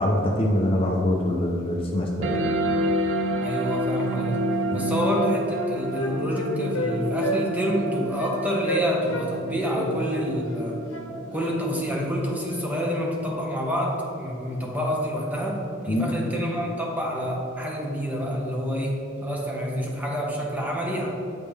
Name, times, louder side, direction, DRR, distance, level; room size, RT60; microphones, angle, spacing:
voice 1, 0.0-2.5 4.7-4.9 15.9-16.1, left 1 dB, 30° left, -1 dB, 0.5 m, -24 dB
sound 1, 2.2-13.2, right 1 dB, 70° right, 0.4 m, -29 dB
voice 2, 3.4-4.4 4.7-10.8 11.3-21.1, equal, 10° right, -2 dB, 0.7 m, -28 dB
Wind instrument woodwind instrument, 4.7-4.9 5.2-6.9 7.2-7.4 7.7-7.8 8.2-8.4 8.6-9.3 9.6-11.5, right 1 dB, 85° left, 0.8 m, -30 dB
8.2 x 3.5 x 3.4 m, 2.8 s
head